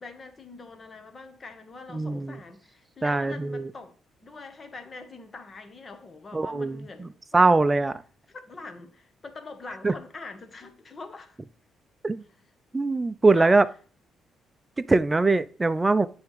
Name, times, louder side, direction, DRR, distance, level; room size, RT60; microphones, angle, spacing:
voice 1, 0.0-3.9 4.2-7.5 8.3-11.4 13.3-13.5, left 3 dB, 35° left, 1.6 m, -43 dB
voice 2, 1.9-2.4 3.0-3.7 6.3-7.9 9.8-9.9 12.0-12.2 12.7-13.6 14.8-16.1, right 3 dB, 20° right, 0.6 m, -22 dB
9.5 x 3.6 x 6.7 m
cardioid pair, 90°, 0 cm